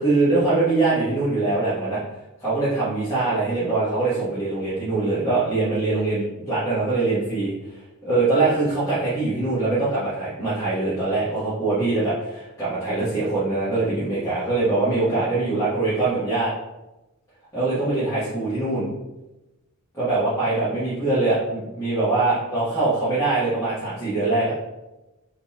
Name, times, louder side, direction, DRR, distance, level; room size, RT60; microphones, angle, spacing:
voice 1, 0.0-2.0 2.4-16.5 17.5-18.9 19.9-24.5, right 2 dB, 15° left, -13 dB, 1.3 m, -23 dB
3.9 x 2.8 x 3.6 m, 1.0 s
head